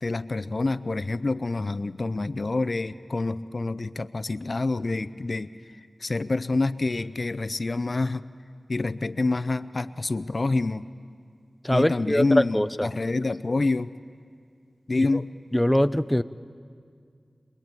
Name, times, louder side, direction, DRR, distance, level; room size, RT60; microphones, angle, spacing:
voice 1, 0.0-5.5 5.8-8.2 8.7-10.9 11.7-13.9 14.9-15.3, left 3 dB, 55° left, 14 dB, 0.6 m, -27 dB
voice 2, 11.6-12.9 15.0-15.2 15.5-16.2, left 1 dB, 10° left, 11 dB, 0.6 m, -23 dB
25.0 x 22.0 x 9.1 m, 2.2 s
wide cardioid pair, 50°, 0 cm